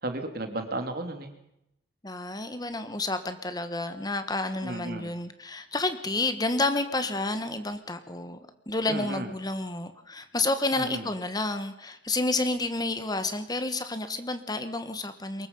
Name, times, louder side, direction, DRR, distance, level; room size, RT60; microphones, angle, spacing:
voice 1, 0.0-1.3 4.6-5.1 8.9-9.3 10.7-11.1, right 1 dB, 55° right, 6 dB, 3.0 m, -34 dB
voice 2, 2.0-8.4 8.7-15.5, left 2 dB, 20° left, 10 dB, 1.4 m, -30 dB
23.5 x 21.0 x 5.5 m, 0.82 s
head